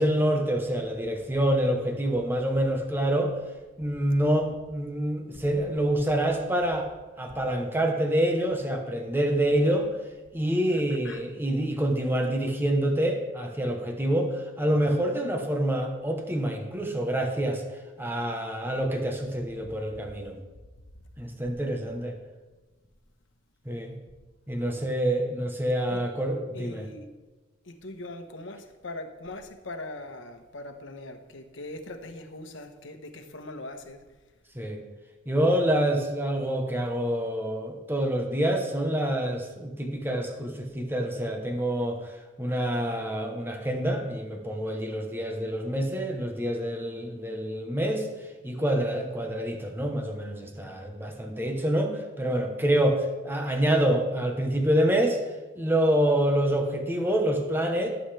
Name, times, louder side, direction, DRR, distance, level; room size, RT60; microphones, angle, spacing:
voice 1, 0.0-3.3 3.8-6.9 7.2-9.9 10.3-17.6 18.0-20.4 21.2-22.2 23.7-24.0 24.5-26.9 34.5-34.8 35.3-48.1 48.4-55.2 55.6-57.9, right 1 dB, 10° right, 3 dB, 1.0 m, -27 dB
voice 2, 10.7-11.2 25.9-26.0 26.5-27.1 27.6-34.2, left 2 dB, 75° left, 6 dB, 1.2 m, -41 dB
17.5 x 8.0 x 3.4 m, 1.2 s
head